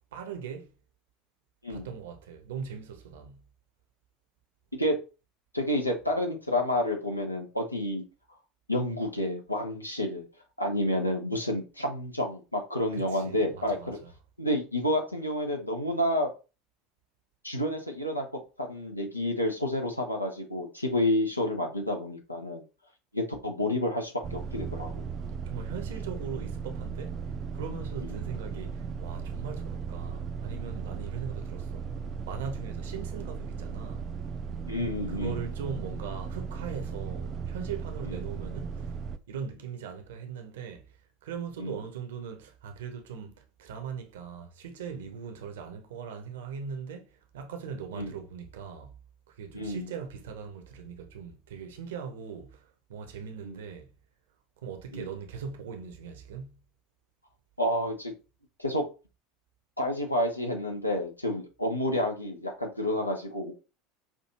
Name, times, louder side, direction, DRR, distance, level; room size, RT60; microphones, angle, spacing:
voice 1, 0.1-0.7 1.7-3.4 12.9-14.1 25.5-27.2 27.5-31.9 32.3-34.1 35.1-38.9 39.3-40.9 41.2-48.9 49.3-53.9 54.6-56.6, right 6 dB, 65° right, 0.8 m, -40 dB
voice 2, 5.5-8.0 8.7-10.2 10.6-14.0 14.4-16.3 17.4-18.2 18.6-22.6 23.1-25.1 28.0-28.2 34.7-35.4 41.6-41.8 47.9-48.1 49.5-49.9 53.4-53.6 54.9-55.1 57.6-58.1 58.6-58.8 59.8-63.5, left 1 dB, 90° left, 0.9 m, -29 dB
sound 1, 24.2-39.2, right 5 dB, 35° right, 0.3 m, -36 dB
6.0 x 2.7 x 2.9 m
figure-of-eight pair, 75°, 0 cm